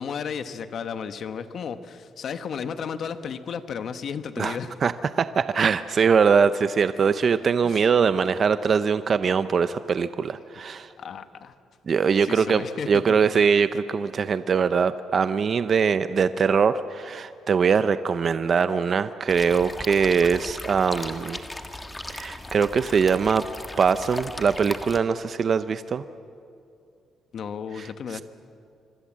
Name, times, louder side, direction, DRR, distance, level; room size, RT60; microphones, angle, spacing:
voice 1, 0.0-4.7 7.6-7.8 11.0-11.5 12.2-13.0 27.3-28.2, left 7 dB, 55° left, 10 dB, 1.2 m, -33 dB
voice 2, 4.4-10.9 11.9-21.4 22.1-23.4 23.8-26.0 27.8-28.2, right 6 dB, 40° right, 12 dB, 0.6 m, -22 dB
sound 1, 19.3-25.0, left 1 dB, 10° left, 1.4 m, -37 dB
25.5 x 24.5 x 7.5 m, 2.5 s
cardioid pair, 135°, 0 cm